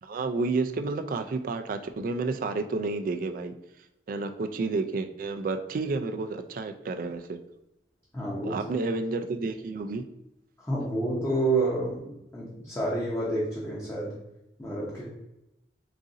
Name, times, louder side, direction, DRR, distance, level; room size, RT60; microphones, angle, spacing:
voice 1, 0.0-3.5 4.1-7.4 8.4-10.0, right 3 dB, 50° right, 7 dB, 0.3 m, -30 dB
voice 2, 8.1-8.6 10.6-14.2 14.6-15.1, right 2 dB, 15° left, -7 dB, 0.7 m, -29 dB
4.0 x 2.5 x 3.7 m, 0.89 s
head